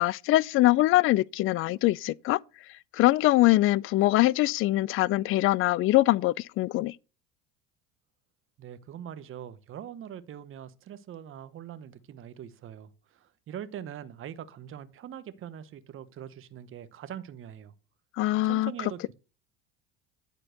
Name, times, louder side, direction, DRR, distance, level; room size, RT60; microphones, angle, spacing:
voice 1, 0.0-2.4 2.9-6.9 18.2-18.7, left 17 dB, 45° left, 0.4 m, -23 dB
voice 2, 8.6-17.7 18.4-19.1, right 9 dB, 40° right, 1.0 m, -42 dB
10.0 x 4.4 x 6.5 m
hypercardioid pair, 80°, 32 cm